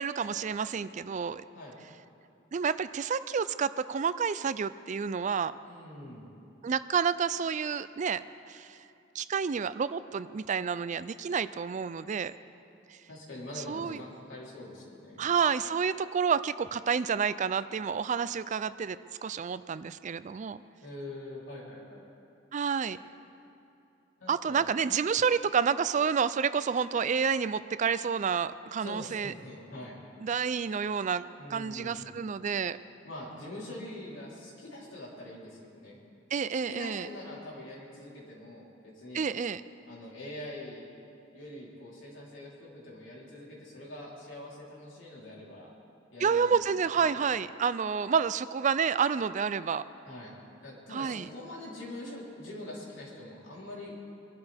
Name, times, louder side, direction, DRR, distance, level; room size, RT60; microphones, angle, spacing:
voice 1, 0.0-1.4 2.5-5.6 6.6-8.8 9.1-12.3 12.9-13.0 13.7-14.0 15.2-19.0 19.2-20.6 22.5-23.0 24.3-29.3 30.2-32.8 36.3-37.1 39.1-39.6 46.2-49.8 50.9-51.3, right 6 dB, 40° right, 15 dB, 0.4 m, -29 dB
voice 2, 5.6-6.3 13.1-15.3 20.8-22.0 24.2-24.6 28.8-30.0 31.3-32.1 33.0-36.0 36.5-39.2 39.9-40.8 41.3-45.7 46.1-46.6 47.0-47.1 50.1-50.3 50.6-53.9, left 1 dB, 85° left, -5 dB, 3.6 m, -44 dB
23.0 x 12.5 x 3.5 m, 2.7 s
head